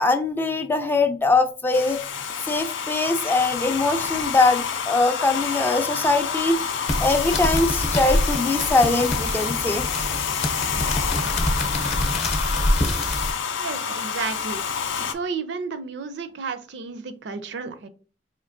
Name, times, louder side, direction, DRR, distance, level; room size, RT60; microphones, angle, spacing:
voice 1, 0.0-2.0 2.5-6.6 7.0-9.8, left 3 dB, 10° left, 8 dB, 0.3 m, -22 dB
Domestic sounds home sounds, 1.7-15.1, left 6 dB, 85° left, 0.4 m, -28 dB
sound 1, 6.9-13.3, left 1 dB, 35° left, 0.7 m, -25 dB
voice 2, 13.6-14.6 15.0-17.9, right 5 dB, 65° right, 11 dB, 0.5 m, -32 dB
4.4 x 2.9 x 2.5 m, 0.38 s
head